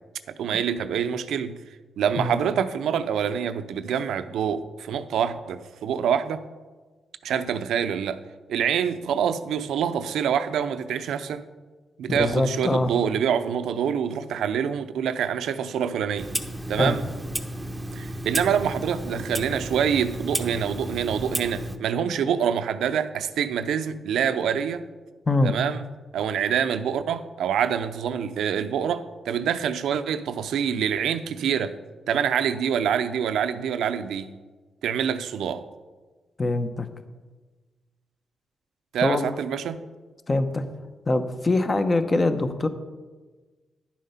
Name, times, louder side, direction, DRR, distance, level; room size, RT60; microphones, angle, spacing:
voice 1, 0.3-1.6 2.0-6.4 7.2-8.2 8.5-11.4 12.0-16.3 16.7-17.1 17.9-24.8 25.4-25.8 26.1-31.7 32.1-34.3 34.8-35.7 38.9-39.8, right 8 dB, 90° right, 11 dB, 0.6 m, -26 dB
voice 2, 12.1-12.9 16.8-16.9 25.3-25.5 36.4-36.9 39.0-39.3 40.3-40.6 41.1-42.7, left 2 dB, 30° left, 9 dB, 0.9 m, -23 dB
Clock, 16.2-21.8, right 1 dB, 10° right, 0.8 m, -32 dB
10.5 x 7.4 x 5.6 m, 1.3 s
cardioid pair, 100°, 0 cm